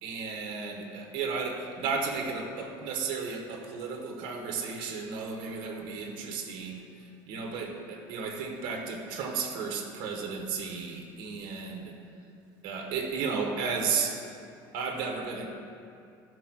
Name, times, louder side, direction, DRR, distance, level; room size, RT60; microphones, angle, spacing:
voice 1, 0.0-6.8 7.3-11.9 12.6-14.2 14.7-15.5, right 5 dB, 60° right, 2 dB, 1.3 m, -33 dB
13.0 x 4.8 x 6.2 m, 2.6 s
cardioid pair, 140°, 10 cm